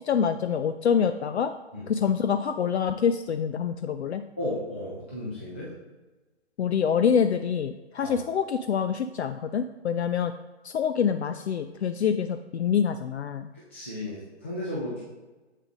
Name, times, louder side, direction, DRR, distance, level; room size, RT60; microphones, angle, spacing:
voice 1, 0.0-1.5 1.9-4.2 6.6-10.3 10.6-13.5, left 7 dB, 70° left, 9 dB, 0.5 m, -26 dB
voice 2, 4.4-5.7 8.0-8.2 13.7-15.0, left 1 dB, 10° left, -8 dB, 0.4 m, -34 dB
7.4 x 6.4 x 2.5 m, 1.2 s
hypercardioid pair, 145°, 35 cm